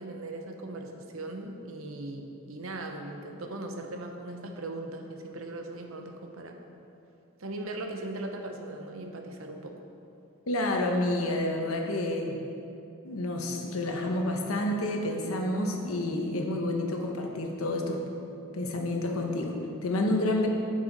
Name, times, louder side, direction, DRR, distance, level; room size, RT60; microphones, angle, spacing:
voice 1, 0.0-6.6 7.4-9.8, right 2 dB, 75° right, 3 dB, 0.8 m, -39 dB
voice 2, 10.5-12.4 13.0-18.0 18.5-19.5 19.8-20.5, left 1 dB, 85° left, 2 dB, 1.0 m, -29 dB
8.5 x 6.8 x 4.0 m, 2.8 s
head